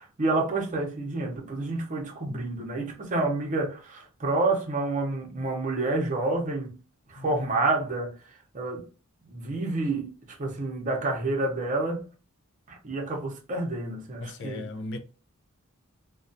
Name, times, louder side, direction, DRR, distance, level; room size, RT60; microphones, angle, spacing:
voice 1, 0.0-6.7 7.1-8.1 8.5-8.8 9.2-10.1 10.4-12.0 12.7-14.7, right 2 dB, 35° right, 0.7 m, -29 dB
voice 2, 14.2-15.0, left 2 dB, 55° left, 0.4 m, -37 dB
2.3 x 2.2 x 2.6 m
head